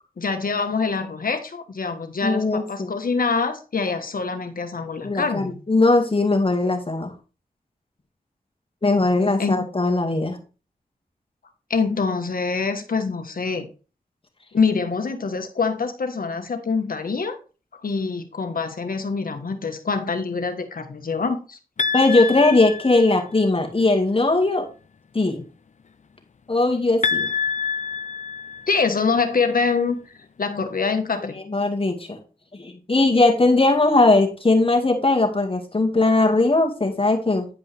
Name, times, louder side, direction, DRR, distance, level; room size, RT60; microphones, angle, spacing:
voice 1, 0.2-5.5 9.4-9.7 11.7-13.7 14.5-17.4 17.8-21.6 28.7-30.1 30.4-31.4, left 4 dB, 70° left, 7 dB, 1.3 m, -25 dB
voice 2, 2.2-2.9 5.0-7.1 8.8-10.4 21.9-24.7 25.1-25.4 26.5-27.3 31.5-32.2 32.5-37.5, left 2 dB, 35° left, 3 dB, 2.0 m, -19 dB
sound 1, 21.8-23.4 27.0-29.1, left 5 dB, 50° left, 0.5 m, -26 dB
9.9 x 5.3 x 3.4 m, 0.35 s
cardioid pair, 50°, 15 cm